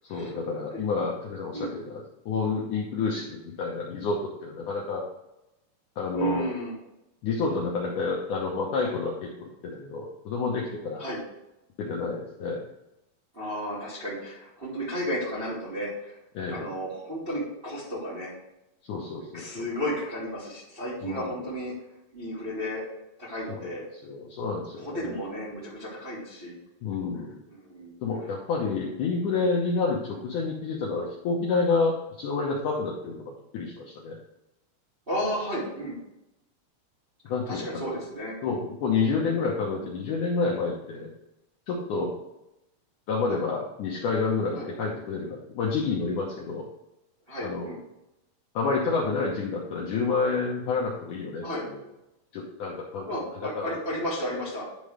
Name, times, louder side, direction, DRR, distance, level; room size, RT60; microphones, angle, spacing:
voice 1, 0.1-5.0 6.0-6.5 7.2-11.0 11.8-12.6 16.4-16.7 18.9-19.7 21.0-21.3 23.5-25.2 26.8-27.4 28.0-34.2 37.3-38.0 38.4-41.1 41.7-42.2 43.1-46.6 47.4-47.8 48.5-51.8 52.3-53.1 53.6-53.8, left 4 dB, 70° left, -3 dB, 2.0 m, -29 dB
voice 2, 6.1-6.7 11.0-11.2 13.3-16.2 16.5-18.3 19.3-21.7 22.1-22.8 23.2-23.9 24.8-26.5 27.5-28.0 35.1-36.0 37.5-38.4 43.3-43.4 44.5-44.7 47.3-47.8 51.4-51.6 53.1-54.6, equal, 20° right, -7 dB, 1.7 m, -33 dB
10.5 x 3.8 x 4.9 m, 0.91 s
omnidirectional pair, 4.6 m